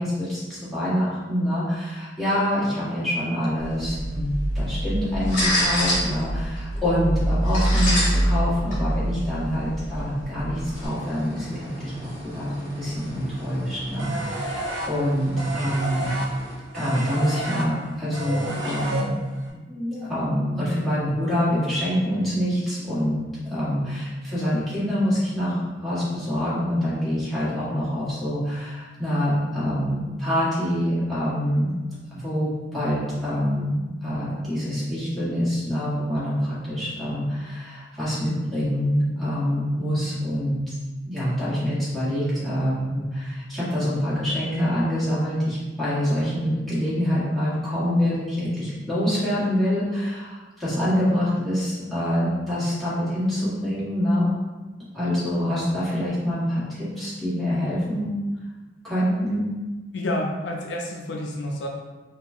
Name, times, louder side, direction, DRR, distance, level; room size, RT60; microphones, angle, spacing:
voice 1, 0.0-16.1 16.7-19.2 19.7-31.7 32.1-40.7 41.0-54.3 54.9-58.1 58.8-59.5, equal, ahead, -12 dB, 1.3 m, -25 dB
sound 1, 3.6-10.9, equal, 45° left, 1.2 m, -25 dB
sound 2, 10.7-16.6, equal, 25° right, 1.3 m, -42 dB
sound 3, 14.0-19.5, right 1 dB, 75° right, 0.6 m, -31 dB
voice 2, 59.9-61.7, left 1 dB, 65° left, 0 dB, 0.4 m, -29 dB
4.4 x 2.3 x 2.6 m, 1.2 s
head